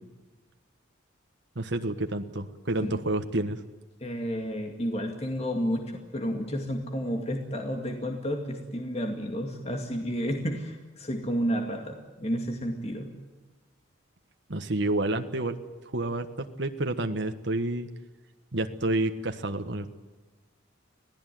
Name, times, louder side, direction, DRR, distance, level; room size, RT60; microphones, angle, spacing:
voice 1, 1.5-3.6 14.5-15.6 15.9-17.9 18.5-19.9, right 2 dB, 60° right, 6 dB, 1.5 m, -29 dB
voice 2, 4.0-13.1, equal, 30° left, 3 dB, 2.4 m, -31 dB
26.0 x 17.5 x 9.3 m, 1.2 s
head